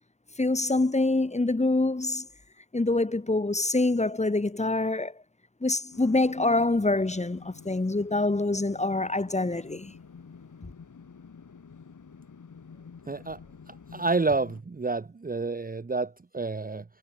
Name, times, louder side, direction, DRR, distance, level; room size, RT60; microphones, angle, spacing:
voice 1, 0.4-2.3 2.7-5.2 5.6-9.9, left 2 dB, 15° left, 1.8 m, -25 dB
sound 1, 5.9-14.6, left 5 dB, 45° left, 5.4 m, -49 dB
voice 2, 13.1-13.4 13.7-16.8, right 3 dB, 20° right, 1.2 m, -29 dB
supercardioid pair, 55°, 44 cm